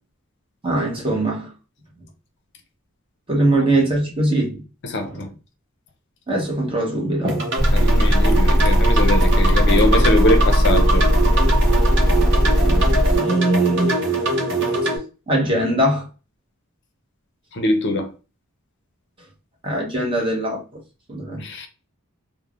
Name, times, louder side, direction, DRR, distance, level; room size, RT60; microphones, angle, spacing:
voice 1, 0.6-1.5 3.3-4.6 5.0-5.3 6.3-7.6 12.6-12.9 13.2-14.0 14.8-14.9 15.3-16.1 19.6-20.6 21.1-21.4, right 1 dB, 25° right, 0.8 m, -21 dB
voice 2, 4.8-5.3 7.7-11.0 17.5-18.1 21.4-21.7, left 1 dB, 55° left, 0.5 m, -22 dB
sound 1, 7.3-15.0, right 2 dB, 55° right, 0.6 m, -23 dB
sound 2, 7.6-13.2, equal, ahead, 1.2 m, -17 dB
3.2 x 2.0 x 2.3 m
head